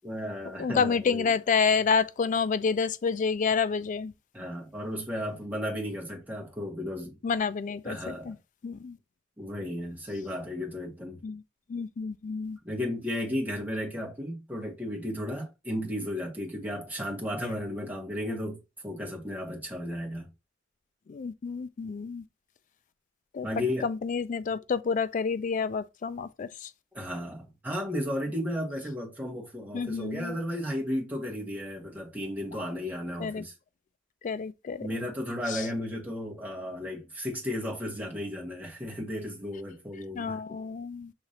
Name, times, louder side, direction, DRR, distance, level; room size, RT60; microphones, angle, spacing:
voice 1, 0.0-1.3 4.3-7.1 7.8-8.3 9.4-11.2 12.6-20.3 23.4-23.9 26.9-33.5 34.8-40.6, left 1 dB, 10° right, 1.4 m, -34 dB
voice 2, 0.6-4.1 7.2-8.3 8.6-9.0 11.2-11.4 11.7-12.6 21.1-22.2 23.3-23.5 23.8-26.7 29.7-30.4 33.2-33.4 34.2-34.9 35.5-35.6 40.1-41.1, left 5 dB, 40° left, 0.3 m, -29 dB
6.4 x 2.9 x 2.8 m
head